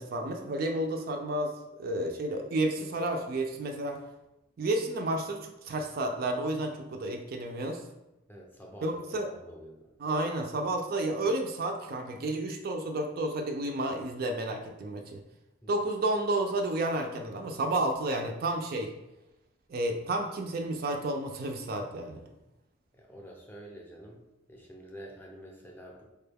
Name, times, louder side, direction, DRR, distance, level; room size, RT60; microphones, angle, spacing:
voice 1, 0.0-1.5 1.8-4.0 4.6-7.8 8.8-9.3 10.0-15.2 15.7-18.9 19.7-22.2, right 1 dB, 45° right, 4 dB, 0.3 m, -31 dB
voice 2, 8.3-9.9 15.6-15.7 22.9-24.2 24.5-26.0, equal, 10° left, -1 dB, 0.5 m, -48 dB
4.6 x 2.2 x 3.3 m, 0.93 s
head